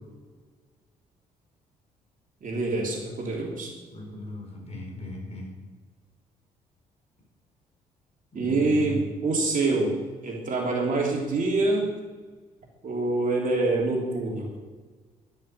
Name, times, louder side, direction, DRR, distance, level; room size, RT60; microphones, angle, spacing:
voice 1, 2.4-3.7 8.3-10.0 10.2-12.0 12.8-14.5, right 3 dB, 45° right, -1 dB, 3.1 m, -26 dB
voice 2, 3.9-5.5 8.3-9.0, left 2 dB, 35° left, 1 dB, 4.7 m, -37 dB
12.5 x 8.1 x 7.7 m, 1.4 s
figure-of-eight pair, 45°, 20 cm